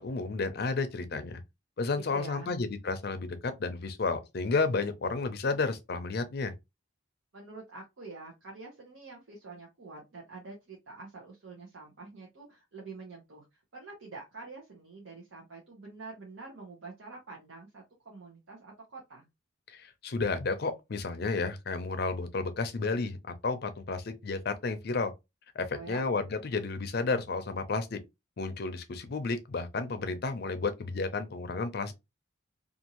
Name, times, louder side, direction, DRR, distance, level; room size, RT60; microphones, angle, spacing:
voice 1, 0.0-1.4 1.8-6.5 19.7-23.2 23.4-25.1 25.5-28.0 28.4-31.9, left 3 dB, 50° left, 0.5 m, -32 dB
voice 2, 2.1-2.5 7.3-13.4 13.7-19.3 25.7-26.0, right 3 dB, 75° right, 0.8 m, -46 dB
2.6 x 2.5 x 2.8 m
head